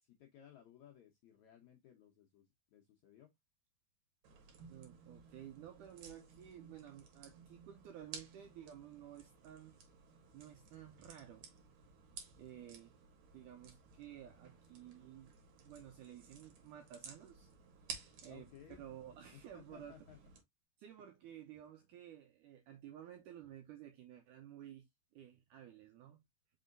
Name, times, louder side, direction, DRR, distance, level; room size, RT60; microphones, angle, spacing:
voice 1, 0.0-3.3 18.3-18.8 19.3-20.2, left 10 dB, 75° left, 1.7 m, -60 dB
sound 1, 4.2-20.4, right 5 dB, 60° right, 2.2 m, -56 dB
voice 2, 4.7-9.8 10.3-11.5 12.4-12.9 13.3-15.4 15.6-17.5 18.2-18.5 18.8-20.0 20.8-26.2, right 11 dB, 85° right, 1.8 m, -54 dB
5.4 x 3.7 x 2.5 m
omnidirectional pair, 4.3 m